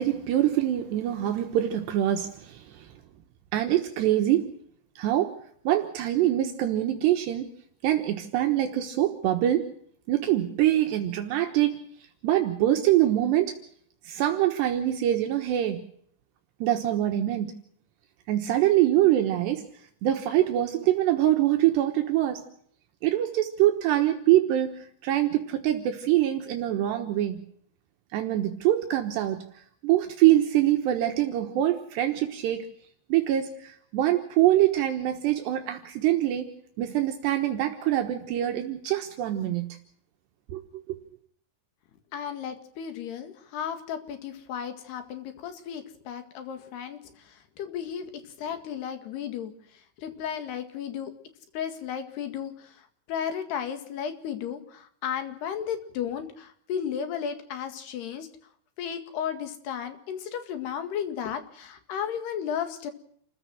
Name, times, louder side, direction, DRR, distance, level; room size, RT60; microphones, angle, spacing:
voice 1, 0.0-2.9 3.5-4.5 5.0-5.3 5.6-7.5 7.8-9.7 10.1-11.8 12.2-13.6 14.1-15.8 16.6-17.5 18.3-19.7 20.0-22.4 23.0-27.4 28.1-29.5 29.8-32.7 33.1-36.5 36.8-39.7 40.5-40.6, right 13 dB, 75° right, 5 dB, 3.4 m, -24 dB
voice 2, 42.1-47.0 47.6-48.1 48.4-49.5 50.0-51.1 51.5-52.5 53.1-58.3 58.8-62.9, left 8 dB, 70° left, 8 dB, 3.9 m, -34 dB
28.5 x 15.0 x 6.3 m, 0.66 s
omnidirectional pair, 5.1 m